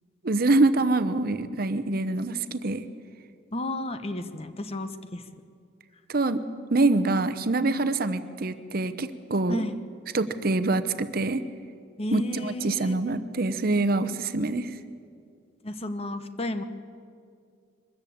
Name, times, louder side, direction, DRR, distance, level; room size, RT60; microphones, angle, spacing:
voice 1, 0.2-2.8 6.1-6.4 6.7-9.6 10.1-11.4 12.1-14.7, right 2 dB, 50° right, 11 dB, 0.8 m, -25 dB
voice 2, 3.5-5.2 9.5-9.8 12.0-13.2 15.6-16.6, left 1 dB, 30° left, 10 dB, 0.9 m, -32 dB
23.0 x 14.0 x 8.7 m, 2.3 s
head